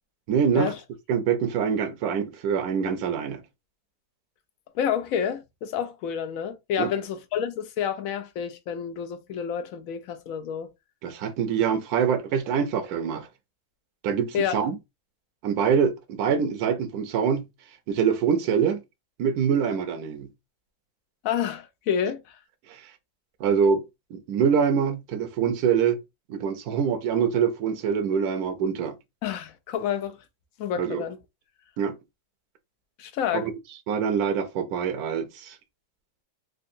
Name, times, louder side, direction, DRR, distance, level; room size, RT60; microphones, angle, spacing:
voice 1, 0.3-0.7 1.1-3.4 6.8-6.9 11.0-13.3 14.0-14.7 15.4-17.5 17.9-18.8 19.2-20.3 22.7-22.8 23.4-23.8 24.1-26.0 26.3-28.9 30.8-31.0 31.8-31.9 33.3-33.5 33.9-35.5, right 7 dB, 90° right, 1.1 m, -24 dB
voice 2, 4.7-10.7 14.3-14.6 21.2-22.4 29.2-30.2 30.6-31.2 33.0-33.5, left 8 dB, 70° left, 0.9 m, -29 dB
3.6 x 2.4 x 2.6 m
omnidirectional pair, 1.6 m